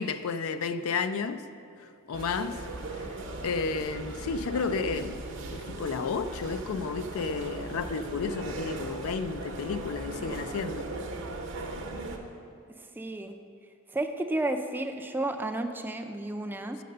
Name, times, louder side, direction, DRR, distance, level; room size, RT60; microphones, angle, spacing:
voice 1, 0.0-1.5 2.1-3.1 3.4-10.9, left 5 dB, 75° left, 0.4 m, -32 dB
sound 1, 2.1-12.2, right 2 dB, 60° right, 0.8 m, -38 dB
voice 2, 12.8-13.4 13.9-16.8, right 2 dB, 10° right, 0.3 m, -32 dB
6.6 x 6.6 x 6.5 m
head